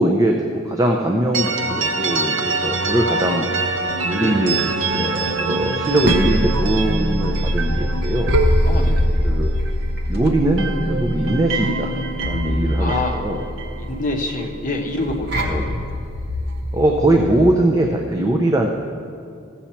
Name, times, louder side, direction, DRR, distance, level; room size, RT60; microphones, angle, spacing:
voice 1, 0.0-3.5 4.0-8.3 9.2-9.5 10.1-11.9 12.2-13.4 15.5-15.8 16.7-18.7, right 1 dB, 15° right, 1 dB, 0.5 m, -21 dB
sound 1, 1.3-10.1 10.4-14.5, right 3 dB, 70° right, 0.8 m, -25 dB
sound 2, 5.7-17.5, equal, 50° right, 1.1 m, -23 dB
voice 2, 8.6-9.3 12.8-13.2 13.7-15.6, left 2 dB, 40° left, 1 dB, 0.9 m, -26 dB
14.5 x 7.1 x 4.4 m, 2.4 s
head